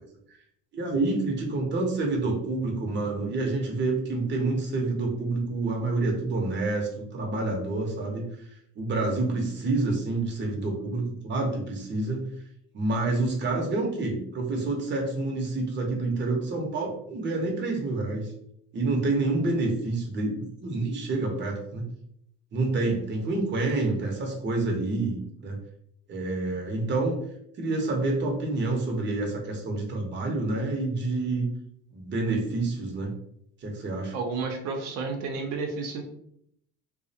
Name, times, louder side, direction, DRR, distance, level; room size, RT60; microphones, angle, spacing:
voice 1, 0.7-8.3 8.8-12.3 12.7-18.3 18.7-21.8 22.5-25.6 26.1-27.2 27.6-31.5 31.9-33.1 33.6-34.1, right 2 dB, 25° right, 1 dB, 0.6 m, -28 dB
voice 2, 34.1-36.0, right 4 dB, 75° right, 2 dB, 0.6 m, -31 dB
2.4 x 2.0 x 2.6 m, 0.70 s
supercardioid pair, 95°, 41 cm